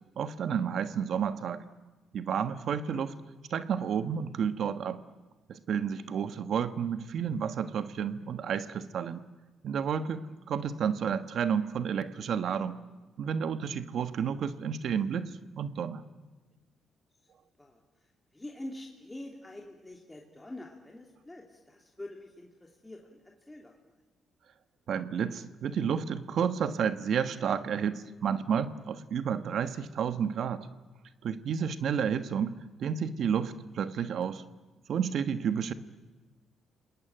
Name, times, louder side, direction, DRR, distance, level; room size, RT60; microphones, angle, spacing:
voice 1, 0.2-1.6 2.1-3.1 3.5-5.0 5.5-9.2 9.6-12.8 13.2-15.3 15.6-16.0 24.9-30.7 31.2-32.5 32.8-34.4 34.9-35.7, right 7 dB, 65° right, 11 dB, 1.3 m, -31 dB
voice 2, 18.3-23.2 23.5-23.7 32.1-32.2, left 1 dB, 15° left, 0 dB, 2.9 m, -45 dB
29.0 x 20.0 x 9.0 m, 1.2 s
cardioid pair, 90°, 0 cm